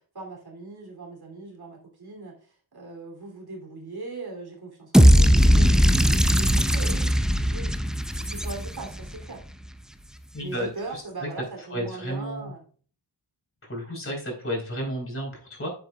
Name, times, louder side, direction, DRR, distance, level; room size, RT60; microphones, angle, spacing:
voice 1, 0.1-2.3 2.7-5.7 6.1-7.1 7.5-7.8 8.1-9.4 10.4-12.6, right 3 dB, 60° right, 0 dB, 3.2 m, -39 dB
sound 1, 4.9-9.1, equal, ahead, 0.5 m, -18 dB
voice 2, 10.3-11.3 11.7-12.5 13.6-15.7, equal, 30° left, -1 dB, 4.1 m, -32 dB
10.0 x 7.8 x 2.4 m, 0.43 s
wide cardioid pair, 120°, 44 cm